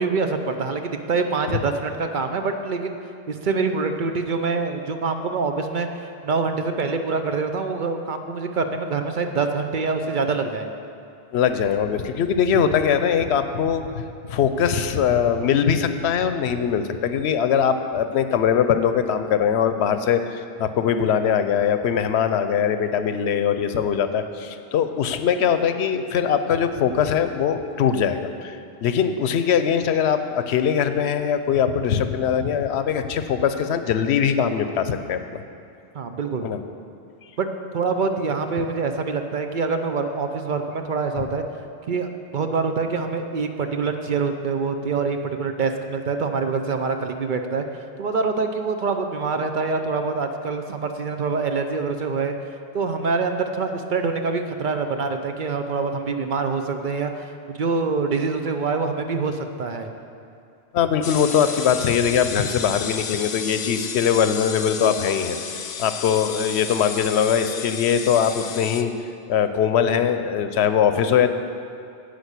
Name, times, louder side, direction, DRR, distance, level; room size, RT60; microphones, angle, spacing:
voice 1, 0.0-2.9 3.3-10.7 35.9-36.5 37.4-41.5 41.9-47.7 48.0-52.3 52.7-59.9, right 4 dB, 55° right, 6 dB, 0.7 m, -25 dB
voice 2, 11.3-35.4 36.4-36.6 60.7-65.4 65.8-68.9 69.3-71.3, left 8 dB, 80° left, 9 dB, 0.9 m, -21 dB
sound 1, 61.0-68.8, left 7 dB, 55° left, 0.5 m, -32 dB
10.5 x 5.1 x 8.2 m, 2.5 s
omnidirectional pair, 1.1 m